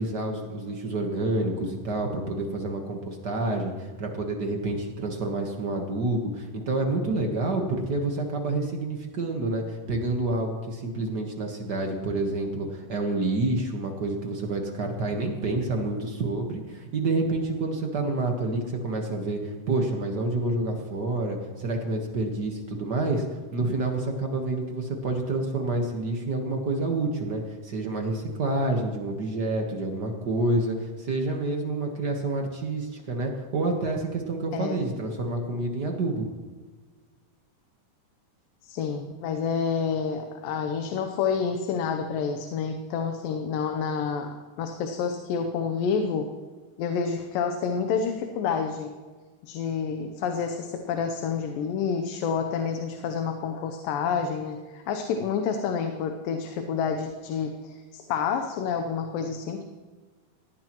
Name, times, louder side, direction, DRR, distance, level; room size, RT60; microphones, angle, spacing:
voice 1, 0.0-36.2, right 2 dB, 55° right, 2 dB, 1.1 m, -28 dB
voice 2, 38.6-46.3 46.8-48.9 49.4-59.6, left 6 dB, 90° left, 6 dB, 2.6 m, -29 dB
18.5 x 16.5 x 3.0 m, 1.4 s
omnidirectional pair, 3.8 m